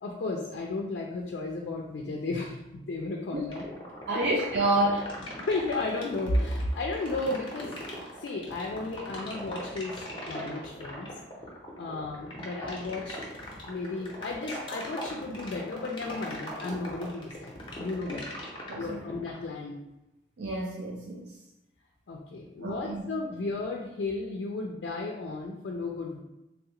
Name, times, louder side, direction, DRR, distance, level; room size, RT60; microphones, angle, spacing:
voice 1, 0.0-3.6 4.1-4.2 5.4-7.7 8.2-11.1 11.8-13.2 13.7-18.4 18.8-19.8 22.1-26.2, left 2 dB, 65° left, 0 dB, 0.4 m, -34 dB
sound 1, 3.5-19.4, left 1 dB, 25° left, 0.6 m, -40 dB
voice 2, 4.1-5.1 18.7-19.0 20.4-21.4 22.6-23.0, right 1 dB, 65° right, -2 dB, 0.4 m, -28 dB
3.4 x 2.4 x 2.9 m, 0.91 s
head